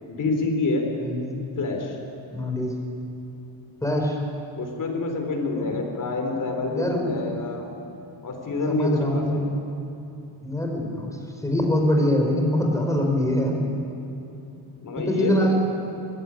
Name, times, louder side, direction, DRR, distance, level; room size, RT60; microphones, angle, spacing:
voice 1, 0.1-0.9 1.6-2.0 4.6-7.7 8.2-9.5 14.8-15.5, left 3 dB, 40° left, 3 dB, 4.1 m, -27 dB
voice 2, 1.0-1.4 2.3-2.8 3.8-4.2 5.5-5.7 6.7-7.2 8.7-9.5 10.4-13.6 15.0-15.5, equal, 5° left, 1 dB, 4.6 m, -24 dB
19.5 x 16.0 x 9.7 m, 2.8 s
cardioid pair, 115°, 48 cm